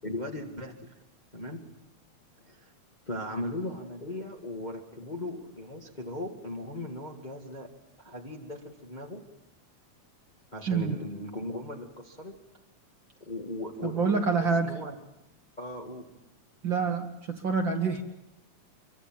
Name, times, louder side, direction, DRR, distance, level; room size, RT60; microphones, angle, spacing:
voice 1, 0.0-0.9 1.3-1.6 2.4-2.7 3.1-7.7 8.0-9.2 10.5-12.4 13.2-14.9 15.6-16.1, left 1 dB, 20° left, 1 dB, 1.4 m, -38 dB
voice 2, 10.7-11.0 13.8-14.7 16.6-18.0, right 5 dB, 45° right, 4 dB, 1.9 m, -27 dB
25.0 x 24.0 x 7.5 m, 0.89 s
omnidirectional pair, 3.4 m